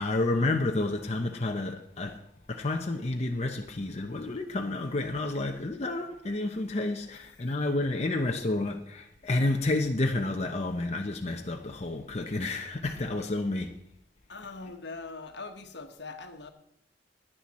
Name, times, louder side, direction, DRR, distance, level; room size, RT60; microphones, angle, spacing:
voice 1, 0.0-2.2 2.5-13.7, left 2 dB, 35° left, 0.8 m, -30 dB
voice 2, 7.1-7.9 14.3-16.5, left 3 dB, 70° left, 1.3 m, -43 dB
16.0 x 10.0 x 4.2 m
head